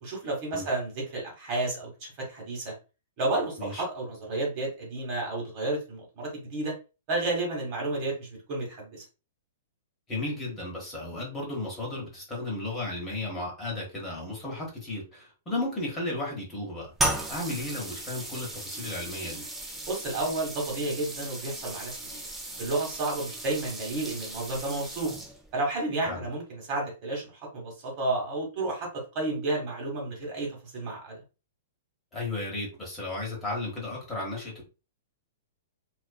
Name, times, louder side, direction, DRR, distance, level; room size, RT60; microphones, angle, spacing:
voice 1, 0.0-2.7 3.2-6.7 7.1-9.0 19.9-22.2 22.6-25.1 25.5-27.3 27.5-31.2, right 2 dB, 40° right, -1 dB, 1.3 m, -31 dB
voice 2, 10.1-16.9 17.3-19.4 26.0-26.3 32.1-34.6, left 2 dB, 15° left, -3 dB, 1.1 m, -34 dB
sound 1, 17.0-25.6, right 2 dB, 10° right, 0.6 m, -36 dB
2.4 x 2.4 x 2.3 m, 0.31 s
hypercardioid pair, 145°, 0 cm